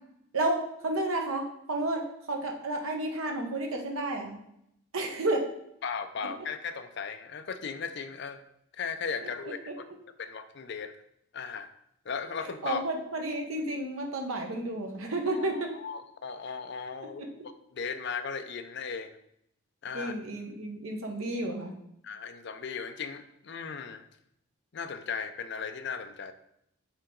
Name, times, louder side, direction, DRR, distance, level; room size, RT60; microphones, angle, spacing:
voice 1, 0.3-2.0 2.3-4.4 4.9-5.4 9.4-9.7 12.4-15.7 17.2-17.3 19.9-21.7, right 2 dB, 70° right, 2 dB, 1.1 m, -31 dB
voice 2, 5.8-8.4 8.7-9.8 10.2-11.0 11.3-11.7 12.1-12.8 15.3-15.5 15.7-19.2 19.8-20.1 22.0-24.0 24.7-26.3, left 5 dB, 50° left, 9 dB, 0.4 m, -37 dB
7.1 x 3.7 x 3.8 m, 0.75 s
head